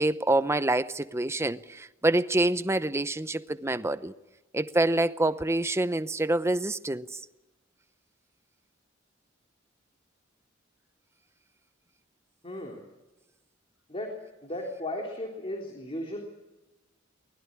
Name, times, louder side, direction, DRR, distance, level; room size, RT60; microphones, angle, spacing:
voice 1, 0.0-4.1 4.5-7.1, right 2 dB, 15° right, 0.7 m, -26 dB
voice 2, 12.4-12.8 13.9-14.1 14.4-16.2, left 1 dB, 30° left, 3.5 m, -35 dB
23.5 x 20.0 x 8.6 m
head